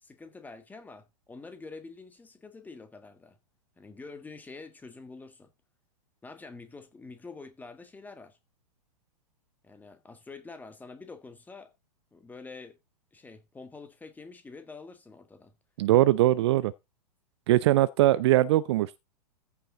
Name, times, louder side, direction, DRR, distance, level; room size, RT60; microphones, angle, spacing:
voice 1, 0.0-3.4 3.8-5.5 6.2-8.4 9.6-11.7 12.1-12.8 13.1-15.5, left 4 dB, 10° left, 1.4 m, -46 dB
voice 2, 15.8-16.7 17.5-19.0, right 15 dB, 40° right, 0.5 m, -21 dB
14.5 x 5.6 x 3.8 m
figure-of-eight pair, 105°, 21 cm